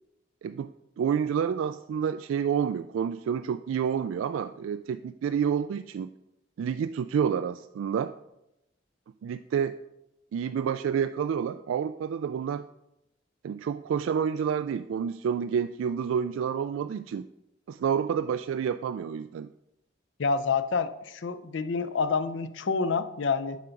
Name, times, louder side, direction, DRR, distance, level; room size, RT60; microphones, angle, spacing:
voice 1, 1.0-6.1 6.6-8.1 9.2-9.8 10.3-12.7 13.4-17.3 17.7-19.5, right 7 dB, 85° right, 11 dB, 0.3 m, -29 dB
voice 2, 20.2-23.6, left 5 dB, 70° left, 12 dB, 0.5 m, -28 dB
8.3 x 5.7 x 5.2 m, 0.88 s
head